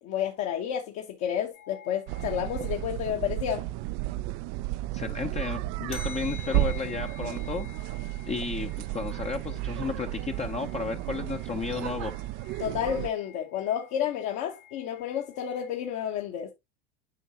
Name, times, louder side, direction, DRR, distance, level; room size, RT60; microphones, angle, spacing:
voice 1, 0.0-3.7 12.6-16.5, left 9 dB, 55° left, 1.2 m, -31 dB
sound 1, 1.5-3.0 5.9-15.9, left 8 dB, 70° left, 2.1 m, -50 dB
sound 2, 2.1-13.1, right 16 dB, 55° right, 0.5 m, -33 dB
voice 2, 4.9-7.7 8.2-12.1, left 5 dB, 20° left, 0.7 m, -33 dB
9.1 x 5.4 x 2.9 m
hypercardioid pair, 80°, 34 cm